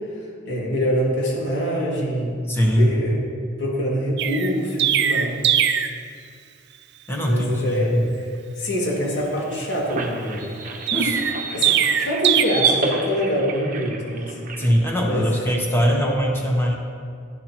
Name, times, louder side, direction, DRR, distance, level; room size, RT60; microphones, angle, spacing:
voice 1, 0.5-2.4 2.8-3.2 3.6-5.3 7.2-8.3 8.6-10.5 11.5-14.4 15.0-15.3, equal, 65° left, -3 dB, 2.3 m, -25 dB
voice 2, 2.5-2.9 7.1-8.1 10.9-11.2 14.6-16.8, equal, 10° left, -1 dB, 1.1 m, -21 dB
Chirp tweet, 4.2-6.0 10.9-12.4, right 9 dB, 60° right, 0.5 m, -20 dB
sound 1, 9.2-14.7, right 4 dB, 45° right, 0.9 m, -29 dB
11.0 x 10.5 x 3.0 m, 2.2 s
head